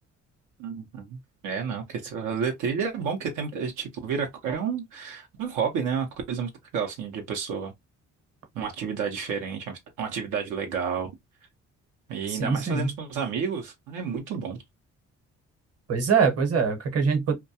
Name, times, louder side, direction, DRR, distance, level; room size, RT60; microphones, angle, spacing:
voice 1, 0.6-1.2 1.4-7.7 8.5-11.1 12.1-14.6, right 6 dB, 85° right, 0.6 m, -30 dB
voice 2, 12.3-12.9 15.9-17.3, right 5 dB, 55° right, 0.9 m, -23 dB
2.3 x 2.2 x 2.7 m
cardioid pair, 90°, 30 cm